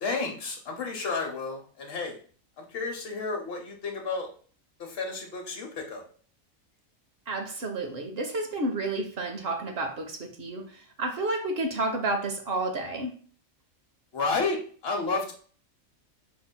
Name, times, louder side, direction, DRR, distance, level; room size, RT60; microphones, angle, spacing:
voice 1, 0.0-2.2 2.6-4.3 4.8-6.0 14.1-15.3, left 4 dB, 50° left, 1.1 m, -31 dB
voice 2, 7.3-13.2, right 2 dB, 55° right, 0.8 m, -31 dB
5.7 x 2.7 x 2.2 m
omnidirectional pair, 1.4 m